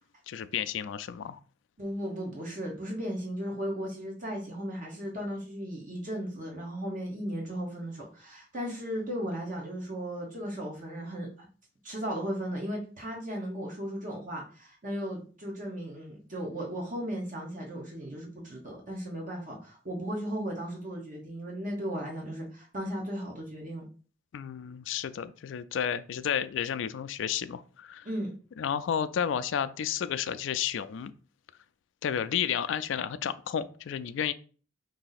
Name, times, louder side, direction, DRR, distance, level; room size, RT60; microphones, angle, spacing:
voice 1, 0.3-1.4 24.3-28.1 28.6-31.1 32.0-34.3, left 8 dB, 75° left, 12 dB, 0.3 m, -31 dB
voice 2, 1.8-11.5 11.8-23.8 28.0-28.3, equal, 45° right, -2 dB, 1.2 m, -36 dB
4.7 x 2.7 x 4.0 m, 0.39 s
head